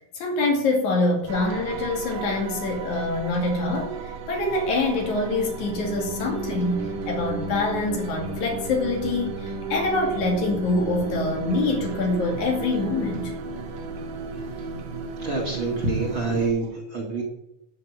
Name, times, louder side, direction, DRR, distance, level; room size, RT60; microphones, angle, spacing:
voice 1, 0.1-13.3, left 2 dB, 85° left, 1 dB, 3.8 m, -25 dB
sound 1, 1.3-16.5, right 3 dB, 80° right, 2.8 m, -33 dB
voice 2, 15.2-17.2, right 3 dB, 45° right, -2 dB, 2.5 m, -26 dB
12.0 x 5.7 x 8.1 m, 0.83 s
omnidirectional pair, 3.3 m